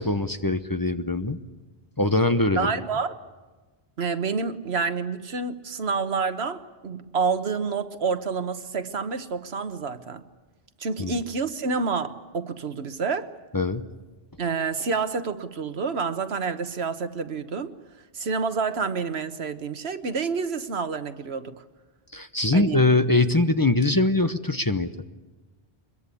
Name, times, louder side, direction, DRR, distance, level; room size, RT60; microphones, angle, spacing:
voice 1, 0.0-1.4 2.0-2.8 11.0-11.2 13.5-13.8 22.1-24.9, left 2 dB, 20° left, 0.8 m, -22 dB
voice 2, 2.6-3.2 4.0-10.2 10.8-13.3 14.4-17.7 18.1-21.5 22.5-22.8, right 5 dB, 85° right, 1.4 m, -28 dB
24.0 x 22.0 x 8.5 m
omnidirectional pair, 1.0 m